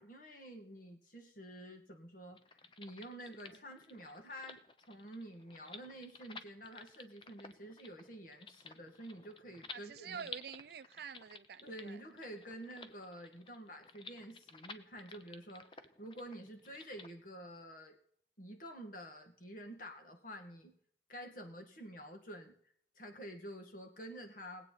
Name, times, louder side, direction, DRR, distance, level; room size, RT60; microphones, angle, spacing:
voice 1, 0.0-10.3 11.6-18.0 18.4-20.7 21.1-22.5 23.0-24.7, equal, 45° left, 1.9 m, -49 dB
sound 1, 2.3-17.1, left 4 dB, 25° left, 0.7 m, -54 dB
voice 2, 9.7-12.0, right 7 dB, 55° right, 0.4 m, -48 dB
20.5 x 8.4 x 4.1 m
head